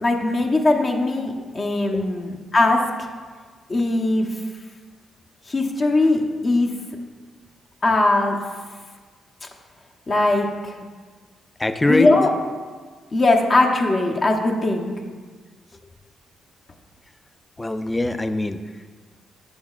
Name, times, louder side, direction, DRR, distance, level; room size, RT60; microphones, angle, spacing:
voice 1, 0.0-2.8 3.7-4.3 5.5-6.7 7.8-8.4 10.1-10.5 11.9-12.3 13.1-14.9, left 2 dB, 40° left, 1 dB, 0.9 m, -19 dB
voice 2, 11.6-12.1 17.6-18.6, left 2 dB, 15° left, 10 dB, 0.4 m, -22 dB
8.1 x 6.3 x 2.4 m, 1.5 s
cardioid pair, 85°, 0 cm